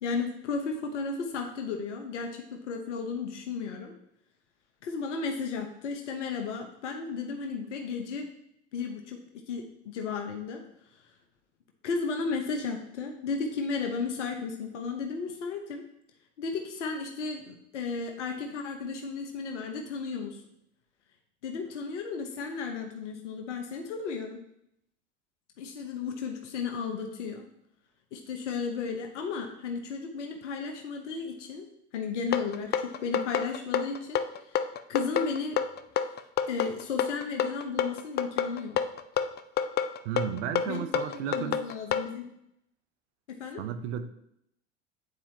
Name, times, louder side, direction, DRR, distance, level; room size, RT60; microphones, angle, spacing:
voice 1, 0.0-3.9 4.8-8.3 8.7-9.2 9.5-10.6 11.8-15.8 16.4-20.4 21.4-24.4 25.6-27.5 28.1-31.7 31.9-34.2 34.5-34.6 34.9-35.6 36.5-38.8 40.7-42.3 43.3-43.6, left 5 dB, 80° left, 3 dB, 0.9 m, -34 dB
sound 1, 32.3-42.1, left 8 dB, 30° left, 0.5 m, -28 dB
voice 2, 40.0-41.6 43.6-44.1, right 9 dB, 70° right, 9 dB, 0.8 m, -33 dB
9.3 x 4.3 x 2.8 m, 0.77 s
hypercardioid pair, 80°, 36 cm